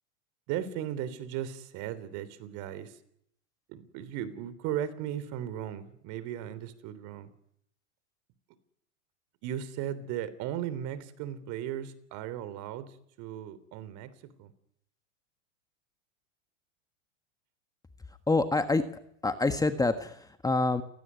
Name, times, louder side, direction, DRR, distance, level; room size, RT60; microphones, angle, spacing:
voice 1, 0.5-3.0 3.7-7.3 9.4-14.1 14.4-14.5, right 10 dB, 50° right, 15 dB, 3.5 m, -36 dB
voice 2, 18.3-20.8, left 3 dB, 10° left, 8 dB, 1.6 m, -27 dB
29.5 x 18.0 x 9.7 m, 0.74 s
hypercardioid pair, 105°, 39 cm